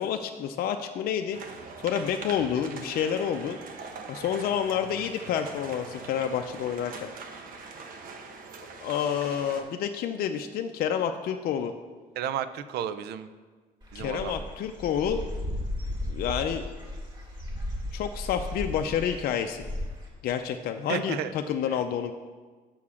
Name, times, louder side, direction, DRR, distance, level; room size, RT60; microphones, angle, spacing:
voice 1, 0.0-1.4 1.8-3.6 4.1-7.1 8.8-11.7 13.9-15.2 16.1-16.7 17.9-19.6 20.2-22.1, left 8 dB, 60° left, 6 dB, 0.5 m, -29 dB
sound 1, 1.3-9.6, right 4 dB, 55° right, 1.1 m, -42 dB
voice 2, 12.2-13.3 13.9-14.3 20.9-21.3, right 9 dB, 75° right, 12 dB, 0.5 m, -32 dB
Dog / Bird, 13.8-20.1, left 1 dB, 25° right, 2.4 m, -35 dB
7.2 x 4.8 x 7.0 m, 1.4 s
cardioid pair, 110°, 17 cm